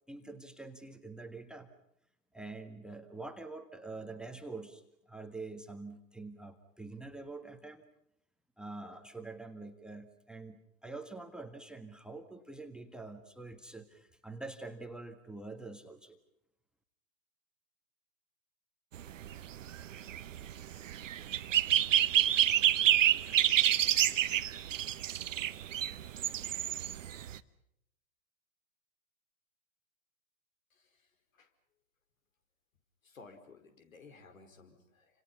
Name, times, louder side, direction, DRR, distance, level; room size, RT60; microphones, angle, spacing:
voice 1, 0.1-1.7 2.3-7.9 8.6-16.2, right 3 dB, ahead, 10 dB, 1.7 m, -46 dB
sound 1, 19.0-27.4, right 11 dB, 65° right, 1.2 m, -28 dB
voice 2, 33.0-35.1, left 4 dB, 70° left, 7 dB, 4.9 m, -55 dB
29.5 x 26.5 x 5.7 m, 0.77 s
figure-of-eight pair, 110°, 41 cm